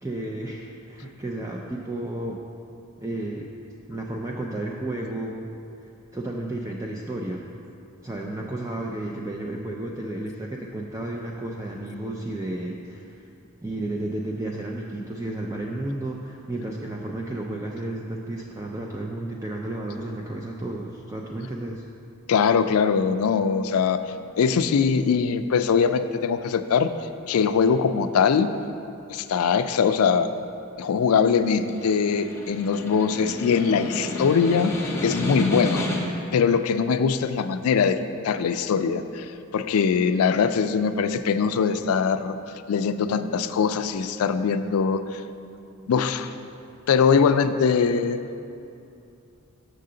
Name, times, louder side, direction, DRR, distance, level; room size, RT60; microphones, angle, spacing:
voice 1, 0.0-2.4 3.0-3.5 3.9-5.5 5.8-7.4 8.0-13.3 13.6-21.8, right 1 dB, 15° right, -1 dB, 0.3 m, -32 dB
voice 2, 22.3-24.0 24.4-26.9 27.3-28.5 29.1-30.3 30.8-35.9 36.3-38.0 38.2-42.4 42.7-45.2 45.9-46.3 46.9-48.2, left 6 dB, 80° left, 11 dB, 0.3 m, -22 dB
Snare drum, 31.4-36.3, left 1 dB, 10° left, 0.7 m, -30 dB
6.6 x 6.6 x 3.8 m, 2.6 s
head